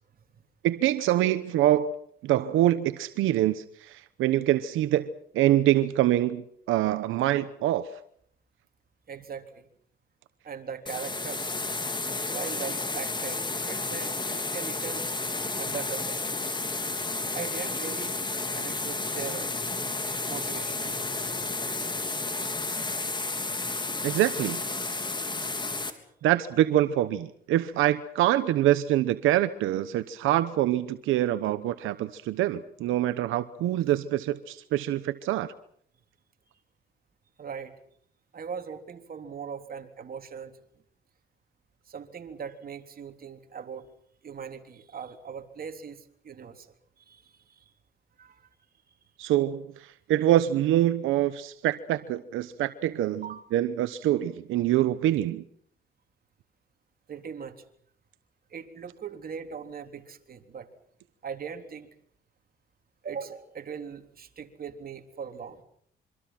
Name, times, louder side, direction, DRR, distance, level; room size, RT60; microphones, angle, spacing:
voice 1, 0.6-1.9 2.2-5.0 5.3-6.4 6.7-7.9 24.0-24.6 26.2-35.5 49.2-49.6 50.1-53.2 53.5-55.4, right 13 dB, 90° right, 12 dB, 1.0 m, -25 dB
voice 2, 9.1-9.7 10.4-11.5 12.3-15.1 15.6-16.3 17.3-18.2 18.5-19.6 20.2-21.1 21.7-21.9 22.9-23.1 28.4-28.5 37.4-37.7 38.3-40.5 41.9-43.9 44.2-47.7 48.2-48.5 53.2-53.4 57.1-57.6 58.5-60.7 61.2-61.9 63.0-65.6, right 6 dB, 50° right, 5 dB, 3.6 m, -40 dB
sound 1, 10.9-25.9, left 3 dB, 25° left, 3.6 m, -32 dB
26.5 x 25.0 x 6.0 m, 0.66 s
cardioid pair, 90°, 20 cm